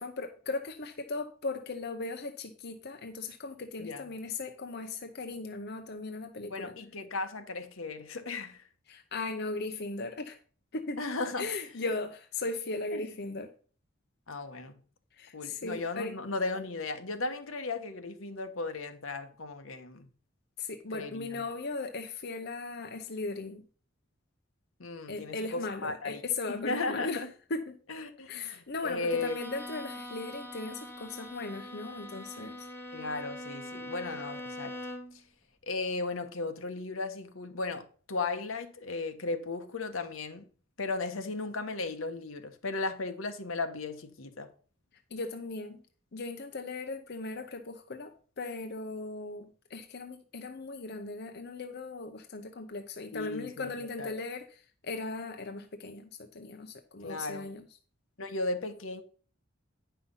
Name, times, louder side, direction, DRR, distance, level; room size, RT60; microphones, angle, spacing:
voice 1, 0.0-6.7 8.9-10.4 10.7-11.0 11.4-13.5 15.1-16.2 20.6-23.6 25.1-27.8 28.3-32.7 45.1-45.8 46.1-57.7, left 3 dB, 55° left, 0.8 m, -38 dB
voice 2, 6.5-8.6 11.0-11.5 12.9-13.0 14.3-14.7 15.3-20.1 20.9-21.4 24.8-26.2 26.5-27.3 27.9-29.4 32.9-34.7 35.7-40.5 40.8-44.5 53.1-53.7 54.0-54.1 57.0-57.5 58.2-59.0, left 3 dB, 80° left, 1.2 m, -36 dB
Bowed string instrument, 29.0-35.2, left 1 dB, 10° left, 1.0 m, -43 dB
9.4 x 5.7 x 5.5 m
head